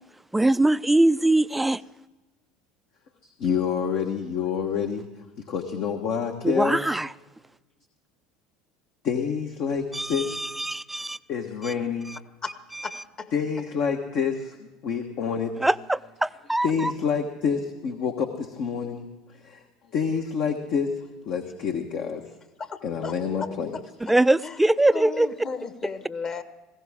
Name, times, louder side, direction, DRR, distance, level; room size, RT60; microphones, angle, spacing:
voice 1, 0.3-1.8 6.4-7.1 9.9-11.2 11.6-11.7 15.6-16.9 24.1-25.3, right 2 dB, 5° right, 0.4 m, -22 dB
voice 2, 3.2-5.1 5.5-6.8 9.0-10.6 11.3-12.1 13.3-15.5 16.6-19.1 19.4-19.6 19.9-20.9 21.2-22.2 22.8-23.7, left 6 dB, 55° left, 1.3 m, -27 dB
voice 3, 12.8-13.3 22.6-24.6 24.9-26.4, left 4 dB, 35° left, 1.4 m, -36 dB
20.0 x 16.5 x 3.6 m
hypercardioid pair, 75°, 2 cm